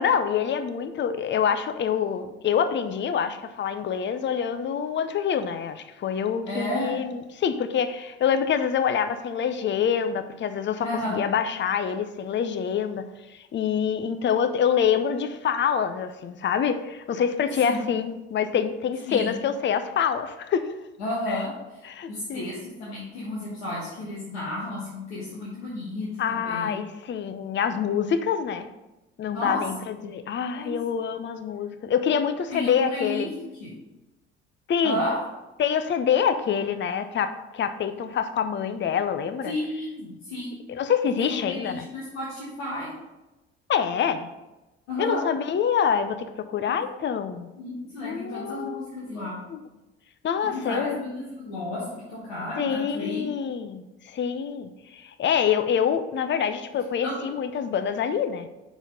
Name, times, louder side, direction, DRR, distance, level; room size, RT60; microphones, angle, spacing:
voice 1, 0.0-20.7 21.3-21.4 21.8-22.5 26.2-28.7 29.2-33.3 34.7-35.0 35.6-39.5 40.7-41.9 43.7-44.3 45.0-47.5 48.0-48.9 49.5-49.6 50.2-51.1 52.6-58.5, left 7 dB, 35° left, 9 dB, 0.6 m, -26 dB
voice 2, 6.5-7.0 10.8-11.3 17.6-17.8 19.1-19.4 21.0-21.8 22.1-26.8 29.3-29.7 30.5-30.8 32.5-33.3 33.6-33.7 34.8-35.2 39.4-40.6 41.2-42.9 44.9-45.3 46.7-46.8 47.6-49.4 50.5-53.2 57.0-57.1, left 1 dB, 80° left, -8 dB, 1.6 m, -32 dB
6.0 x 4.0 x 5.2 m, 1.0 s
figure-of-eight pair, 50°, 33 cm